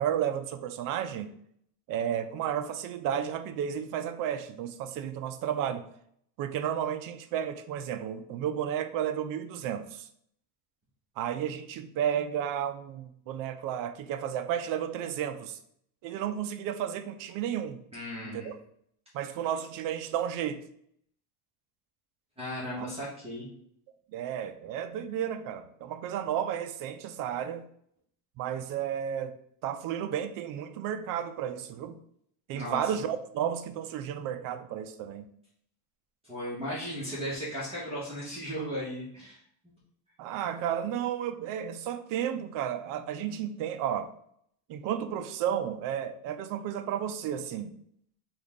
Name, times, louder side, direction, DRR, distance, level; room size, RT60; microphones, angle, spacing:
voice 1, 0.0-1.3 1.9-5.8 6.4-10.1 11.2-15.6 16.0-17.8 18.2-18.5 19.1-20.6 22.8-22.9 24.1-27.7 28.4-29.4 29.6-32.0 32.5-35.3 40.2-44.1 44.7-47.7, right 9 dB, 50° right, 9 dB, 0.5 m, -32 dB
voice 2, 17.9-18.5 22.4-23.5 32.5-32.9 36.2-39.4, equal, 15° right, -8 dB, 1.3 m, -36 dB
3.8 x 2.4 x 3.6 m, 0.68 s
supercardioid pair, 120°, 43 cm